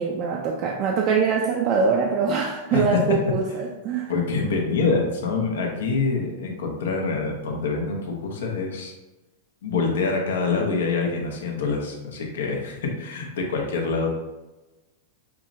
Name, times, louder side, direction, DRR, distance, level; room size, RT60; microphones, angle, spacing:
voice 1, 0.0-4.1, right 5 dB, 40° right, 0 dB, 0.4 m, -23 dB
voice 2, 2.7-3.0 4.1-8.9 9.6-14.1, left 4 dB, 85° left, 1 dB, 0.8 m, -25 dB
5.6 x 2.0 x 2.5 m, 1.1 s
supercardioid pair, 135°, 0 cm